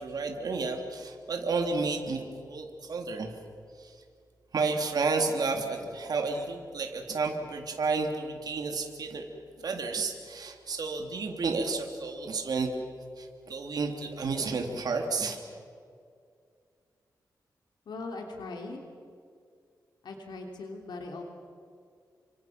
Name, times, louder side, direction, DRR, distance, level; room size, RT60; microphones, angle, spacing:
voice 1, 0.0-3.3 3.8-3.9 4.5-9.3 9.6-12.7 13.2-15.4, right 4 dB, 65° right, 3 dB, 3.2 m, -31 dB
voice 2, 17.8-18.8 20.0-21.2, left 3 dB, 85° left, 2 dB, 3.2 m, -40 dB
30.0 x 25.0 x 6.0 m, 2.3 s
wide cardioid pair, 110°, 7 cm